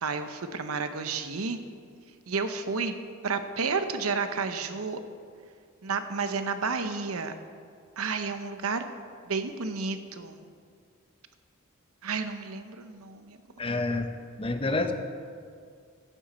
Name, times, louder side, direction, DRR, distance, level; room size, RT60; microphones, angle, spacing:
voice 1, 0.0-1.6 2.3-2.9 3.2-5.0 5.8-7.3 8.0-8.9 9.3-10.4 12.0-13.4 13.8-13.9, right 4 dB, 85° right, 9 dB, 0.8 m, -31 dB
voice 2, 13.6-14.1 14.4-14.9, left 2 dB, 25° left, 7 dB, 0.7 m, -28 dB
15.0 x 9.0 x 4.3 m, 2.2 s
head